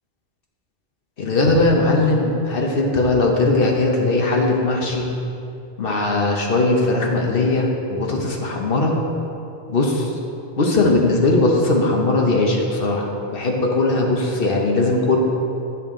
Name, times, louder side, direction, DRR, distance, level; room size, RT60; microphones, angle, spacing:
voice 1, 1.2-5.1 5.8-9.0 9.7-10.1 10.6-15.2, left 2 dB, 55° left, 0 dB, 1.1 m, -19 dB
8.3 x 7.1 x 3.7 m, 2.7 s
omnidirectional pair, 1.2 m